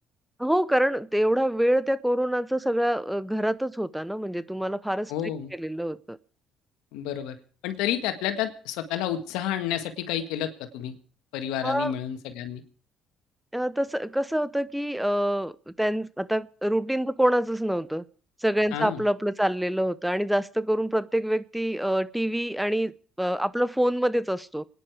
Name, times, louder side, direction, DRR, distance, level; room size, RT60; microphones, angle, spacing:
voice 1, 0.4-5.1 5.5-6.2 11.6-11.9 13.5-18.0 18.4-22.9 23.2-24.6, equal, 5° right, 17 dB, 0.7 m, -26 dB
voice 2, 5.1-5.5 6.9-7.4 7.6-10.9 11.3-12.6 18.7-19.0, left 10 dB, 85° left, 8 dB, 1.8 m, -30 dB
26.5 x 10.0 x 4.9 m, 0.41 s
supercardioid pair, 80°, 0 cm